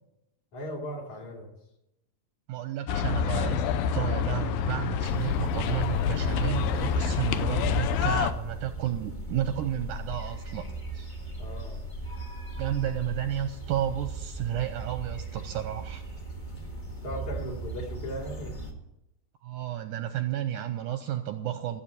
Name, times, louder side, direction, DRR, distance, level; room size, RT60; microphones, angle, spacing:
voice 1, 0.5-1.5 11.4-11.8 16.5-16.6 17.0-18.5, equal, 50° left, -1 dB, 4.1 m, -37 dB
voice 2, 2.5-11.1 12.6-16.0 19.4-21.8, right 11 dB, 80° right, 8 dB, 1.9 m, -32 dB
sound 1, 2.9-8.3, left 7 dB, 80° left, 2.5 m, -27 dB
sound 2, 5.0-18.7, right 2 dB, 30° left, 0.9 m, -38 dB
15.0 x 7.9 x 8.5 m, 0.89 s
omnidirectional pair, 4.3 m